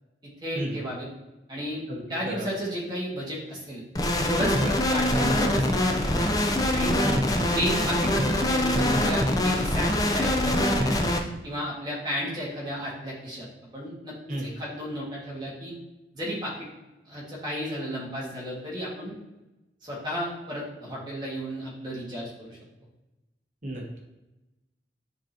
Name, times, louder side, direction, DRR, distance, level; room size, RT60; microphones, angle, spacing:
voice 1, 0.4-1.1 1.5-1.8 2.1-3.8 4.2-4.6 4.9-6.3 6.7-7.0 7.5-11.0 11.4-13.5 13.7-15.7 16.1-16.7 17.1-19.2 19.8-22.6, equal, 25° right, -6 dB, 1.7 m, -33 dB
voice 2, 1.9-2.5 4.6-4.7 7.0-7.2 14.3-14.5 23.6-24.0, right 1 dB, 45° right, -1 dB, 1.1 m, -33 dB
sound 1, 4.0-11.2, left 1 dB, 20° left, 0.5 m, -24 dB
9.7 x 3.8 x 2.9 m, 1.0 s
head